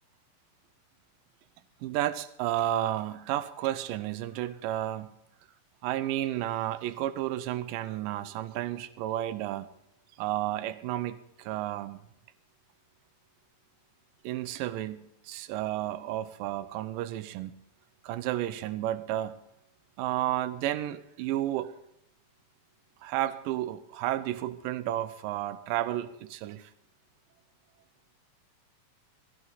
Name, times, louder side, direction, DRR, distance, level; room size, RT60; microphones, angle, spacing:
voice 1, 1.8-5.1 5.8-9.7 10.2-12.0 14.2-17.5 18.0-19.4 20.0-21.7 23.0-26.7, right 13 dB, 75° right, 2.3 m, -32 dB
16.0 x 14.5 x 4.0 m
omnidirectional pair, 4.2 m